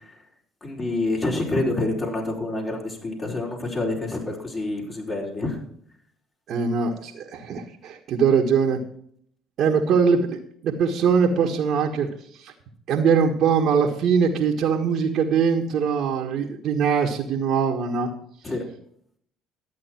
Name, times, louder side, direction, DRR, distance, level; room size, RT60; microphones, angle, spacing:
voice 1, 0.6-5.6 18.4-18.6, left 2 dB, 35° left, -2 dB, 4.5 m, -27 dB
voice 2, 6.5-8.8 9.6-12.1 12.9-18.1, right 6 dB, 60° right, -1 dB, 1.6 m, -22 dB
12.5 x 8.6 x 4.5 m, 0.64 s
hypercardioid pair, 65°, 0 cm